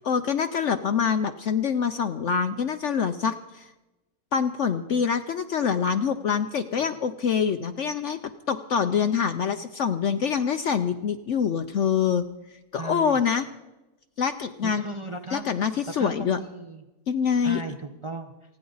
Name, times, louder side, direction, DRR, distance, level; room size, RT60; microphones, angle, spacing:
voice 1, 0.0-3.7 4.3-8.2 8.5-12.3 12.7-13.4 14.2-14.8 15.3-16.4 17.1-17.6, left 7 dB, 60° left, 9 dB, 0.8 m, -25 dB
voice 2, 12.8-13.2 14.6-15.6 16.0-16.8 17.4-18.3, right 3 dB, 25° right, 4 dB, 0.7 m, -36 dB
29.0 x 9.8 x 3.9 m, 1.0 s
omnidirectional pair, 1.7 m